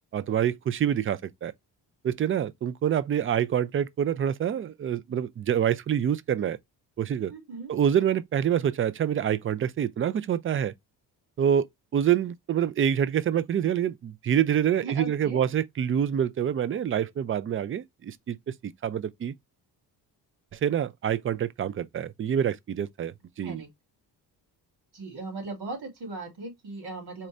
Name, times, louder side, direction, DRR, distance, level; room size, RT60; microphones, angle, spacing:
voice 1, 0.1-1.5 2.0-6.6 7.0-7.3 7.7-10.7 11.4-19.3 20.5-23.6, right 9 dB, 35° right, 0.4 m, -26 dB
voice 2, 7.3-7.7 14.8-15.5 23.4-23.7 24.9-27.3, right 3 dB, 70° right, 2.8 m, -38 dB
4.3 x 2.5 x 3.2 m
cardioid pair, 105°, 40 cm